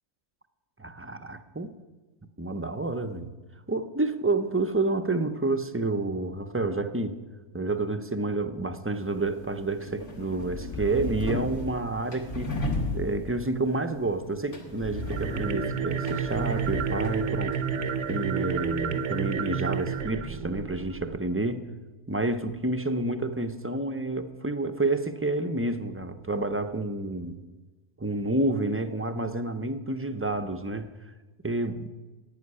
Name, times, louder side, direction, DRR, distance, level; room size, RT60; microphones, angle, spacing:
voice 1, 0.8-1.7 2.4-3.3 3.7-7.2 7.5-12.6 12.9-17.6 18.1-21.7 22.1-27.4 28.0-30.9 31.4-31.9, right 2 dB, 15° right, 9 dB, 0.5 m, -29 dB
sound 1, 8.9-20.0, left 1 dB, 80° left, 2.5 m, -36 dB
sound 2, 15.0-21.2, right 7 dB, 80° right, 1.2 m, -30 dB
11.5 x 8.8 x 9.7 m, 1.2 s
omnidirectional pair, 1.2 m